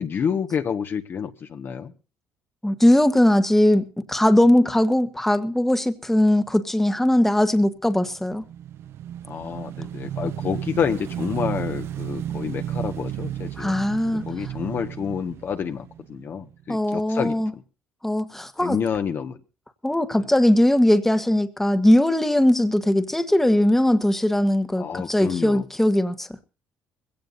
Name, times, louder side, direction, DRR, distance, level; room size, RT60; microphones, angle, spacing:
voice 1, 0.0-1.9 9.3-13.8 14.1-17.6 18.6-19.4 20.2-20.3 24.8-25.6, left 7 dB, 50° left, 1.5 m, -29 dB
voice 2, 2.6-8.4 13.6-14.2 16.7-17.5 18.0-18.8 19.8-26.3, left 1 dB, 5° left, 1.5 m, -20 dB
Motorcycle / Engine, 8.1-16.6, right 11 dB, 65° right, 0.7 m, -33 dB
21.0 x 17.0 x 2.7 m
cardioid pair, 85°, 5 cm